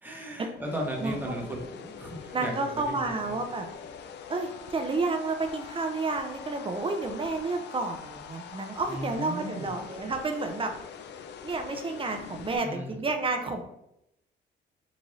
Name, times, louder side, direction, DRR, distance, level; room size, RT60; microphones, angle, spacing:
voice 1, 0.0-3.0 3.3-3.4 8.9-9.7 12.4-12.9, equal, 10° right, 0 dB, 0.9 m, -36 dB
sound 1, 0.6-12.6, left 7 dB, 60° left, 0.4 m, -44 dB
voice 2, 1.0-1.5 2.3-3.7 4.3-10.7 11.4-13.6, right 3 dB, 25° right, 5 dB, 0.6 m, -30 dB
3.9 x 2.5 x 3.1 m, 0.80 s
cardioid pair, 90°, 20 cm